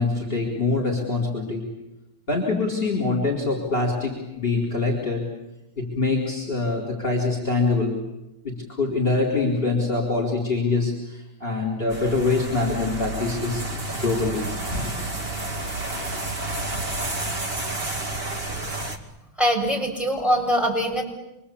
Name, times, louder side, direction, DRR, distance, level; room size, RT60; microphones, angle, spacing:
voice 1, 0.0-1.7 2.3-5.3 5.8-8.0 8.4-14.9, left 3 dB, 25° left, 0 dB, 4.4 m, -24 dB
sound 1, 11.9-19.0, right 2 dB, 25° right, 2.6 m, -30 dB
voice 2, 19.4-21.0, equal, ahead, -1 dB, 6.9 m, -22 dB
28.0 x 24.0 x 8.7 m, 0.91 s
omnidirectional pair, 2.3 m